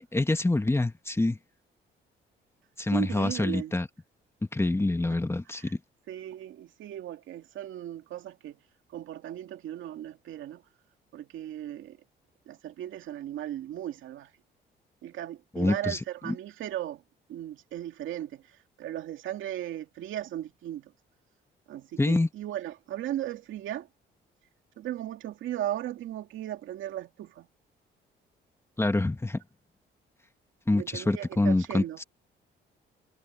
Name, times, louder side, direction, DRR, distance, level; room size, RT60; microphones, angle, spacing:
voice 1, 0.0-1.4 2.8-3.9 4.5-5.8 15.5-16.3 22.0-22.3 28.8-29.4 30.7-32.0, left 2 dB, 15° left, 1.4 m, -26 dB
voice 2, 2.9-3.8 5.6-5.7 6.1-8.6 8.9-10.6 11.1-12.0 12.5-14.3 15.0-17.0 17.3-18.4 18.8-20.9 21.7-23.9 24.8-27.5 30.7-32.0, right 12 dB, 80° right, 2.2 m, -36 dB
cardioid pair, 90°, 20 cm